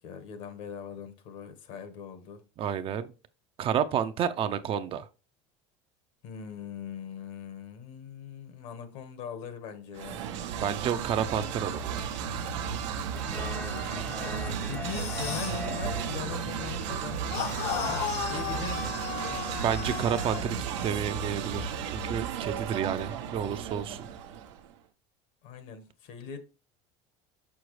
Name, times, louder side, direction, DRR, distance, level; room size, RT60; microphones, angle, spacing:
voice 1, 0.0-2.4 6.2-10.3 14.2-18.0 18.3-19.0 25.4-26.4, left 7 dB, 65° left, 1.4 m, -41 dB
voice 2, 2.6-3.1 3.6-5.1 10.5-12.1 19.6-20.6 20.8-24.1, right 8 dB, 40° right, 0.5 m, -30 dB
sound 1, 9.9-24.6, right 7 dB, 85° right, 0.9 m, -34 dB
sound 2, 13.1-20.5, left 3 dB, 10° left, 0.6 m, -44 dB
sound 3, 14.8-15.7 17.3-20.5, left 8 dB, 50° left, 0.8 m, -35 dB
6.3 x 6.0 x 3.2 m
supercardioid pair, 125°, 15 cm